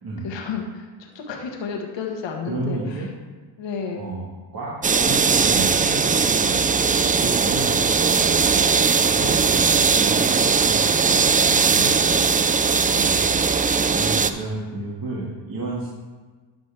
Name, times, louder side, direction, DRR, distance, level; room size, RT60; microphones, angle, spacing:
voice 1, 0.2-3.0 3.6-4.0, left 5 dB, 70° left, 1 dB, 1.6 m, -31 dB
voice 2, 2.5-3.1 3.9-4.2 4.5-6.9 7.1-7.8 8.6-11.9 12.9-13.3 13.9-15.9, right 2 dB, 50° right, -6 dB, 2.0 m, -32 dB
sound 1, 4.8-14.3, right 5 dB, 20° right, 0.4 m, -19 dB
12.5 x 5.2 x 3.5 m, 1.4 s
supercardioid pair, 65°, 46 cm